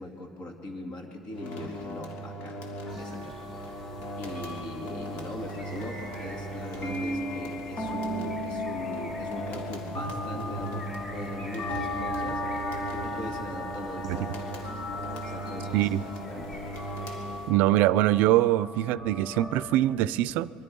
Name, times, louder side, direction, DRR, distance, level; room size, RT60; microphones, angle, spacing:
voice 1, 0.0-2.6 3.0-3.4 3.7-3.8 4.2-12.4 12.9-16.0 16.3-16.6, left 1 dB, 40° left, 2 dB, 2.3 m, -41 dB
sound 1, 1.3-17.8, equal, 90° left, 2.9 m, -39 dB
sound 2, 2.9-19.6, left 1 dB, 60° left, 6.5 m, -37 dB
sound 3, 2.9-17.5, right 1 dB, 10° left, 5.0 m, -49 dB
voice 2, 17.5-20.5, right 15 dB, 85° right, 18 dB, 0.5 m, -23 dB
25.5 x 23.0 x 5.4 m, 2.6 s
cardioid pair, 170°, 3 cm